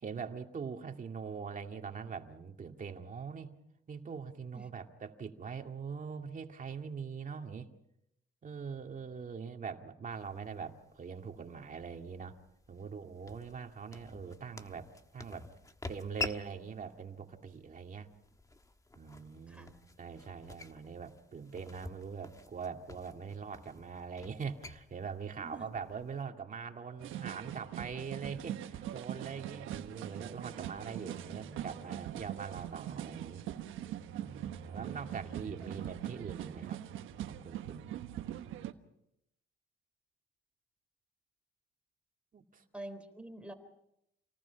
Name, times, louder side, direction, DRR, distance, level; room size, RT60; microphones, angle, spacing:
voice 1, 0.0-3.5 3.9-7.7 8.4-12.4 12.7-15.5 15.9-18.1 19.0-33.5 34.1-36.8 37.3-37.9 42.3-42.6, right 6 dB, 40° right, 4 dB, 2.3 m, -43 dB
sound 1, 10.1-26.2, left 3 dB, 15° left, 1.3 m, -48 dB
sound 2, 27.0-38.7, right 12 dB, 90° right, 1.2 m, -42 dB
sound 3, 29.2-36.7, right 5 dB, 70° right, 2.6 m, -51 dB
voice 2, 42.7-43.5, right 1 dB, 5° right, 7 dB, 3.5 m, -46 dB
28.0 x 19.0 x 5.9 m, 0.81 s
cardioid pair, 90°, 20 cm